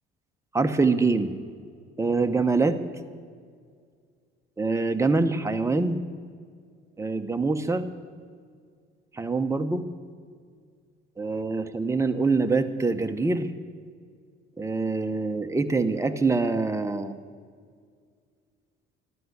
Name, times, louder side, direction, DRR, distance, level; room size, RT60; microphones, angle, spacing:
voice 1, 0.5-1.3 2.0-2.8 4.6-6.0 7.0-7.9 9.1-9.8 11.2-13.5 14.6-17.2, right 3 dB, 15° right, 7 dB, 1.0 m, -24 dB
13.0 x 12.0 x 8.1 m, 2.1 s
cardioid pair, 105°, 21 cm